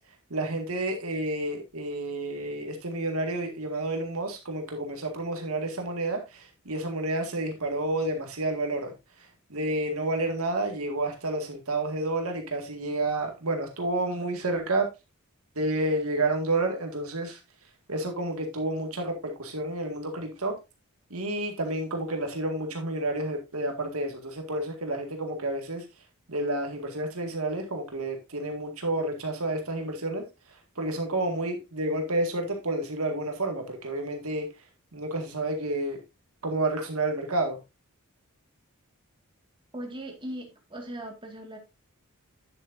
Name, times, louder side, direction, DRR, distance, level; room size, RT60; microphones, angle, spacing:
voice 1, 0.3-8.9 9.5-14.9 15.6-17.4 17.9-20.6 21.1-25.9 26.3-30.2 30.8-34.5 34.9-36.0 36.4-37.6, right 2 dB, 75° right, 2.0 m, -30 dB
voice 2, 39.7-41.6, right 1 dB, 25° right, 1.9 m, -39 dB
9.9 x 7.6 x 2.6 m
head